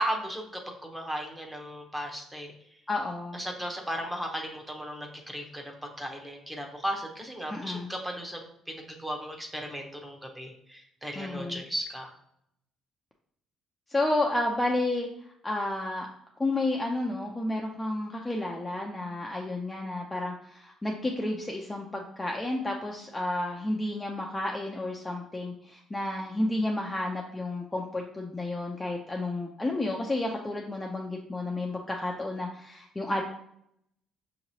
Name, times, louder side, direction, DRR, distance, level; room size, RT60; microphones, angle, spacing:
voice 1, 0.0-2.5 3.3-8.4 8.7-12.1, equal, 10° right, 2 dB, 0.8 m, -35 dB
voice 2, 2.9-3.4 7.5-7.9 11.2-11.6 13.9-15.1 15.4-16.1 16.4-33.2, left 2 dB, 10° left, 0 dB, 0.4 m, -31 dB
5.7 x 2.9 x 2.8 m, 0.73 s
cardioid pair, 115°, 0 cm